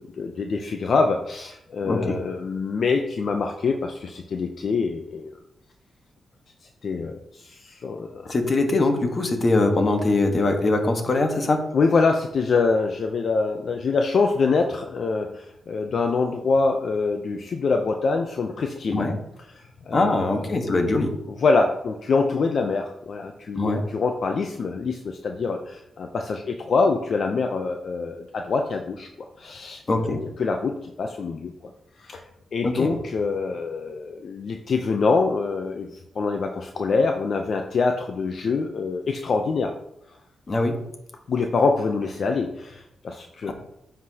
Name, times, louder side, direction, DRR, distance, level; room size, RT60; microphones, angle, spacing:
voice 1, 0.0-5.3 6.8-8.3 11.7-19.1 19.4-20.7 21.3-30.1 30.4-31.7 32.0-32.2 32.5-39.7 41.3-43.5, left 4 dB, 60° left, 4 dB, 0.6 m, -25 dB
voice 2, 1.8-2.2 8.3-11.6 18.9-19.2 19.9-21.1 23.5-23.8 29.9-30.2 32.6-32.9 40.5-40.8 43.5-43.6, left 2 dB, 35° left, 4 dB, 1.3 m, -22 dB
9.6 x 5.9 x 2.8 m, 0.81 s
cardioid pair, 105°, 0 cm